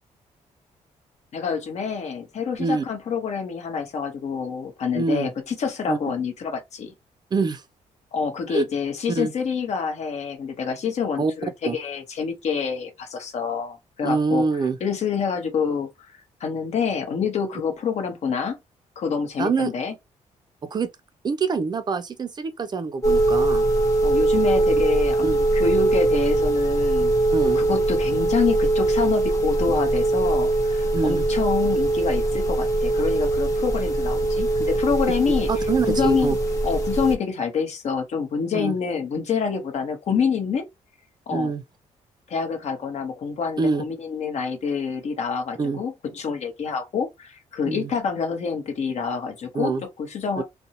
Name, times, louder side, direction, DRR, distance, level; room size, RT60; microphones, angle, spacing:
voice 1, 1.3-6.9 8.1-14.4 14.8-15.9 16.4-18.6 19.0-19.9 24.0-27.1 27.6-35.5 35.9-36.4 36.6-40.7 41.3-41.5 42.3-50.4, left 6 dB, 60° left, 0.9 m, -27 dB
voice 2, 5.0-5.3 5.9-6.0 7.3-7.6 8.5-8.6 9.1-9.3 11.2-11.3 11.6-11.8 14.0-14.8 19.4-19.7 20.6-20.9 21.2-23.7 25.2-25.4 27.3-27.6 30.9-31.2 35.5-36.3 38.5-38.7 41.3-41.6 43.6-43.8 45.6-45.8 47.7-47.9 49.5-49.8 50.4-50.5, right 4 dB, 30° right, 0.3 m, -25 dB
sound 1, 23.0-37.2, right 2 dB, 25° left, 0.8 m, -21 dB
2.6 x 2.1 x 2.8 m
cardioid pair, 120°, 13 cm